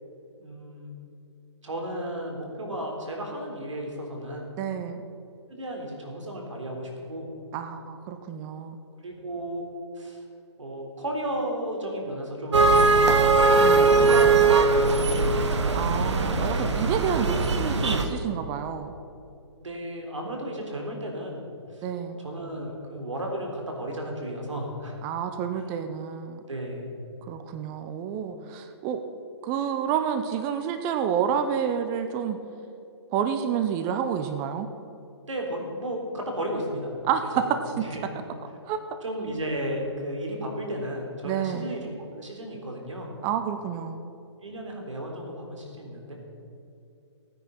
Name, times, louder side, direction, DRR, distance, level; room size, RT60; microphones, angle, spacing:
voice 1, 0.4-0.9 1.6-4.5 5.5-7.3 9.0-9.7 9.9-10.2 10.6-12.7 13.7-15.3 15.6-16.0 16.4-17.0 19.6-21.4 21.7-21.9 22.2-25.1 25.5-25.7 26.5-26.9 35.3-36.9 37.3-37.4 37.8-38.0 39.0-43.1 44.4-46.1, right 1 dB, 85° right, 1 dB, 3.7 m, -34 dB
voice 2, 4.6-5.0 7.5-8.8 13.6-13.9 15.7-18.9 21.8-22.2 25.0-26.4 27.3-29.0 29.4-32.4 33.1-34.7 37.1-37.8 38.7-38.8 41.2-41.7 43.2-44.0, right 8 dB, 20° right, 8 dB, 0.5 m, -29 dB
sound 1, 12.5-18.0, right 3 dB, 70° right, 1.5 m, -20 dB
16.5 x 9.5 x 5.6 m, 2.8 s
hypercardioid pair, 150°, 15 cm